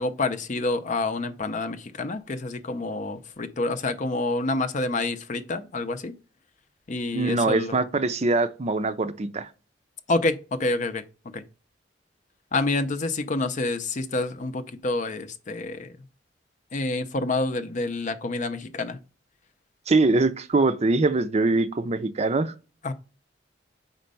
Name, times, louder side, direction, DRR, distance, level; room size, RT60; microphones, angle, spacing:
voice 1, 0.0-6.1 6.9-7.8 10.1-11.0 11.3-11.4 12.5-15.9 16.7-19.0 22.8-22.9, left 2 dB, 45° left, 0.6 m, -28 dB
voice 2, 7.1-9.5 19.9-22.5, right 3 dB, 35° right, 0.5 m, -23 dB
5.1 x 4.5 x 5.3 m
head